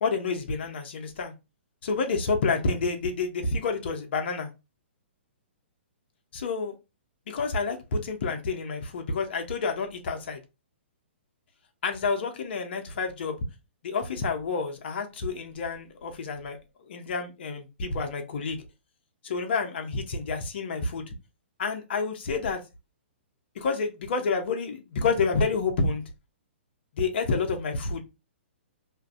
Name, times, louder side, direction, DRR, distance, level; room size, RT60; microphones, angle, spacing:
voice 1, 0.0-1.3 1.8-4.5 6.3-6.7 7.3-10.4 11.8-13.4 13.8-16.6 16.9-18.6 19.2-21.1 21.6-22.6 23.6-26.0 27.0-28.0, left 4 dB, 60° left, 0.6 m, -29 dB
2.6 x 2.4 x 2.4 m
hypercardioid pair, 135°, 6 cm